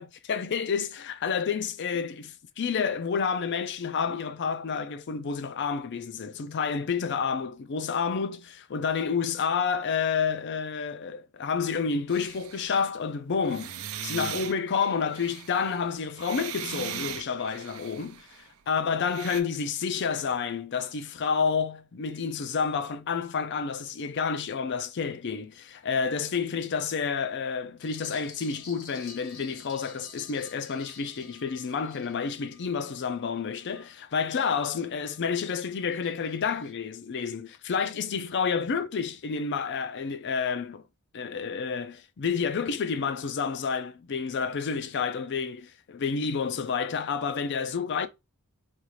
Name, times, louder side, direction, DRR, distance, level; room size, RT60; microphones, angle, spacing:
voice 1, 0.0-13.8 14.0-18.3 18.7-40.8 41.1-48.1, left 6 dB, 55° left, 0.4 m, -29 dB
sound 1, 12.1-12.8 13.5-18.5 19.1-19.4, right 9 dB, 75° right, 0.5 m, -39 dB
sound 2, 27.8-34.5 34.9-36.7, left 4 dB, 75° left, 1.2 m, -51 dB
4.2 x 2.5 x 3.1 m
head